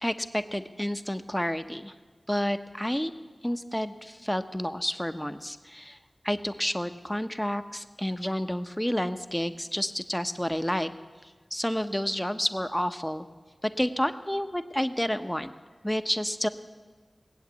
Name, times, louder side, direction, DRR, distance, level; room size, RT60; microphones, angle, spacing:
voice 1, 0.0-1.9 2.3-3.1 3.4-6.0 6.2-10.9 11.2-13.3 13.6-15.5 15.8-16.5, equal, 10° left, 10 dB, 0.9 m, -30 dB
19.5 x 8.1 x 8.2 m, 1.4 s
wide cardioid pair, 40°, 0 cm